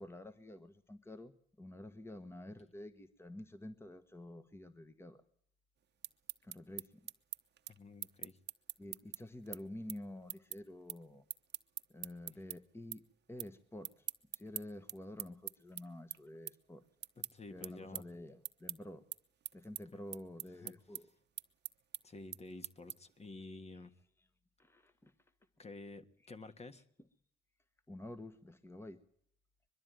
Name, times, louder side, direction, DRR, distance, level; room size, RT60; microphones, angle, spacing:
voice 1, 0.0-1.3 1.6-5.2 6.4-7.1 8.8-11.2 11.9-14.1 14.3-16.8 17.5-19.0 19.5-21.1 24.6-25.1 27.9-29.0, left 1 dB, 10° left, 11 dB, 1.4 m, -49 dB
sound 1, 5.8-12.6 12.9-13.5 13.8-23.2, right 10 dB, 60° right, 0.9 m, -45 dB
voice 2, 7.7-8.4 12.3-12.4 17.2-18.1 19.9-20.0 20.5-21.0 22.0-23.9 25.6-26.8, left 2 dB, 30° left, 10 dB, 1.6 m, -51 dB
22.5 x 12.5 x 9.3 m, 0.66 s
cardioid pair, 90°, 20 cm